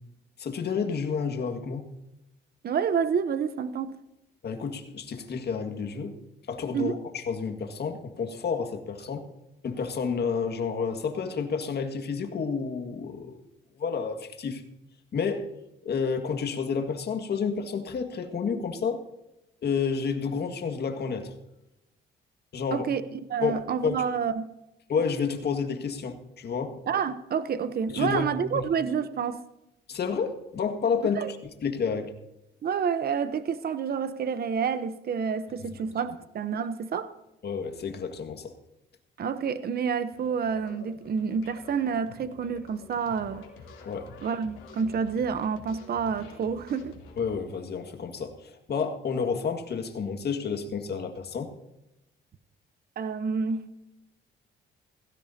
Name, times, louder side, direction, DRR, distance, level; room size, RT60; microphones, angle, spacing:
voice 1, 0.4-1.9 4.4-6.2 6.5-9.3 9.6-13.4 13.8-14.6 15.1-15.5 15.8-19.0 19.6-21.3 22.5-22.9 23.4-24.1 24.9-26.8 27.9-28.7 29.9-31.4 31.6-32.1 35.6-35.7 37.4-38.5 43.9-44.1 47.2-51.5, left 5 dB, 55° left, 6 dB, 2.0 m, -30 dB
voice 2, 2.6-3.9 6.7-6.9 22.7-24.5 26.9-29.4 31.2-31.3 32.6-37.1 39.2-43.4 44.2-47.0 53.0-53.7, right 6 dB, 50° right, 12 dB, 0.9 m, -29 dB
sound 1, 40.1-47.4, left 4 dB, 90° left, 3.1 m, -48 dB
18.0 x 16.0 x 2.8 m, 0.91 s
cardioid pair, 90°, 20 cm